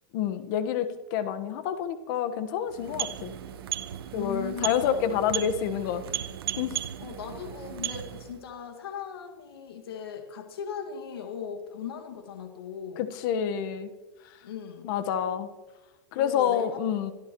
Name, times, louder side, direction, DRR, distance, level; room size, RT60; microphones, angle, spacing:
voice 1, 0.1-3.3 4.1-6.0 6.6-6.8 13.0-13.9 14.8-15.5 16.1-17.1, left 9 dB, 60° left, 9 dB, 1.3 m, -28 dB
Interac Machine, 2.6-8.4, right 11 dB, 80° right, 1.1 m, -36 dB
voice 2, 4.1-5.2 7.0-13.1 14.4-14.9 16.2-16.7, left 7 dB, 90° left, 2 dB, 2.1 m, -38 dB
25.5 x 12.5 x 3.1 m, 1.2 s
hypercardioid pair, 125°, 12 cm